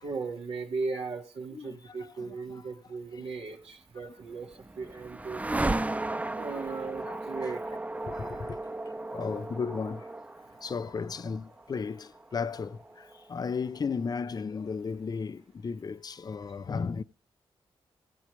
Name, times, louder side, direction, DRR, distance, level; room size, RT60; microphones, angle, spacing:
voice 1, 0.0-5.4 6.4-7.8 16.4-16.5, right 4 dB, 75° right, 2.2 m, -37 dB
voice 2, 1.5-2.3 3.2-3.3 6.5-6.7 7.0-7.2 8.1-8.6 9.1-10.1 10.6-17.0, left 5 dB, 40° left, 0.6 m, -35 dB
sound 1, 4.0-14.1, right 2 dB, 15° right, 0.5 m, -36 dB
17.0 x 8.1 x 3.3 m
cardioid pair, 60°, 10 cm